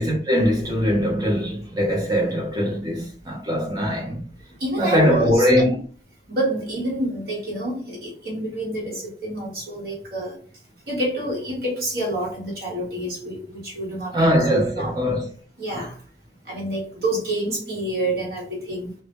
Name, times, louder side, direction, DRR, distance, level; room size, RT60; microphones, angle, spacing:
voice 1, 0.0-4.2 4.8-5.8 14.1-15.3, equal, 20° right, 0.6 m, -21 dB
voice 2, 4.6-5.7 6.3-10.4 10.9-14.2 14.5-15.0 15.6-16.0 16.5-18.9, right 1 dB, 55° right, 0.9 m, -27 dB
2.1 x 2.0 x 2.9 m
head